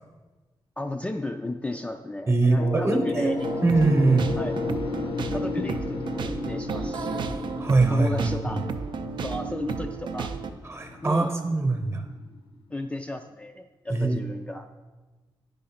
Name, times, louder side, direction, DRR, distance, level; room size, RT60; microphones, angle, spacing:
voice 1, 0.8-3.4 4.4-4.5 5.3-7.4 7.9-8.6 9.2-10.3 11.0-11.3 12.7-14.7, left 2 dB, 15° left, 5 dB, 0.3 m, -34 dB
voice 2, 2.3-4.3 7.6-8.5 10.7-12.0 13.9-14.2, right 3 dB, 30° right, 5 dB, 0.9 m, -22 dB
sound 1, 2.6-8.1, left 4 dB, 45° left, 0.6 m, -34 dB
sound 2, 2.8-12.7, left 3 dB, 80° left, 0.7 m, -37 dB
sound 3, 3.4-10.5, right 5 dB, 65° right, 0.5 m, -33 dB
9.2 x 3.8 x 5.7 m, 1.2 s
wide cardioid pair, 110°, 9 cm